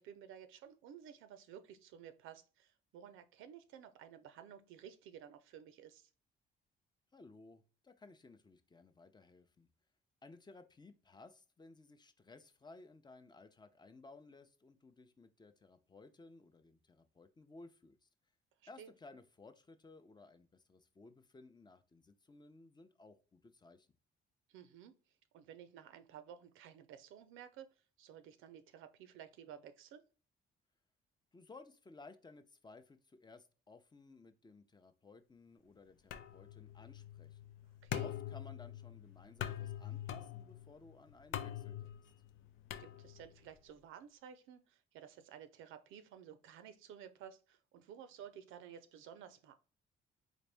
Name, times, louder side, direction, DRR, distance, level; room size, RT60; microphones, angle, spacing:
voice 1, 0.0-6.1 18.8-18.9 24.5-24.9 25.3-27.7 28.0-30.0 37.8-38.1 42.8-49.5, right 9 dB, 90° right, 0.5 m, -54 dB
voice 2, 7.1-9.7 10.2-18.1 18.7-23.9 31.3-37.4 38.0-42.1, left 3 dB, 20° left, 0.6 m, -58 dB
sound 1, 36.1-43.5, left 11 dB, 85° left, 0.5 m, -45 dB
4.0 x 2.6 x 3.4 m
cardioid pair, 90°, 20 cm